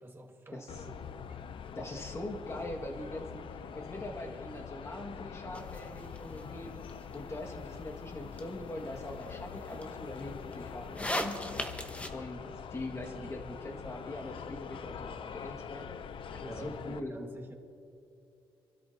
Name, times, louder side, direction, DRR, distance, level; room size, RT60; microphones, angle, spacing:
voice 1, 0.0-1.4 16.4-17.5, right 2 dB, 25° right, 2 dB, 1.7 m, -48 dB
sound 1, 0.7-17.0, left 7 dB, 65° left, 0.6 m, -44 dB
voice 2, 1.7-3.5 3.7-6.8 7.1-11.5 12.1-12.4 12.7-15.9 16.3-17.1, left 1 dB, 30° left, 0 dB, 1.9 m, -42 dB
sound 2, 5.5-12.1, left 1 dB, 15° left, 1.2 m, -41 dB
27.5 x 12.5 x 2.8 m, 2.7 s
cardioid pair, 105°, 10 cm